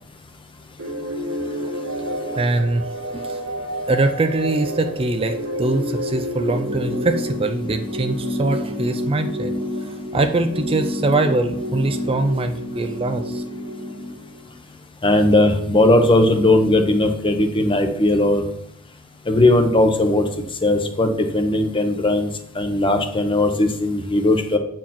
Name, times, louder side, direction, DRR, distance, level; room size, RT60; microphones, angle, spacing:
sound 1, 0.8-14.5, equal, 65° right, 1.9 m, -29 dB
voice 1, 2.3-2.9 3.1-3.4 3.9-9.5 10.1-13.4, right 2 dB, 25° right, 6 dB, 0.4 m, -22 dB
voice 2, 15.0-18.4 19.3-20.3 20.6-22.3 22.5-24.6, left 1 dB, 25° left, 6 dB, 1.0 m, -18 dB
8.9 x 4.6 x 5.9 m, 0.73 s
head